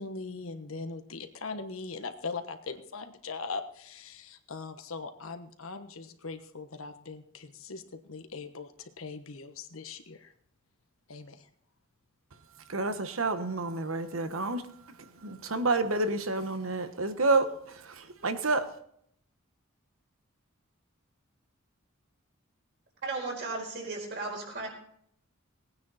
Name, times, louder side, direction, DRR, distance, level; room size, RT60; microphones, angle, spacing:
voice 1, 0.0-10.3 11.1-11.5, left 4 dB, 75° left, 8 dB, 1.2 m, -40 dB
voice 2, 12.7-14.6 14.9-18.7, right 3 dB, 75° right, 10 dB, 1.2 m, -29 dB
voice 3, 23.0-24.7, right 3 dB, 55° right, 0 dB, 4.4 m, -35 dB
18.5 x 9.4 x 4.2 m, 0.67 s
head